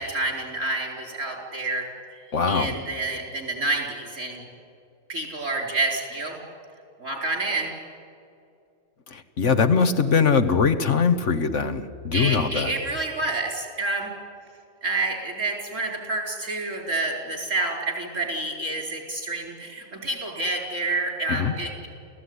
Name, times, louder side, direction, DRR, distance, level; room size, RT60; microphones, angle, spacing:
voice 1, 0.0-1.9 2.2-4.4 5.1-6.4 7.0-7.7 12.1-14.1 14.8-21.9, right 2 dB, 75° right, 1 dB, 5.2 m, -28 dB
voice 2, 2.3-2.7 9.1-12.7 21.3-21.5, left 5 dB, 70° left, 9 dB, 1.7 m, -22 dB
29.0 x 16.0 x 9.8 m, 2.4 s
omnidirectional pair, 1.3 m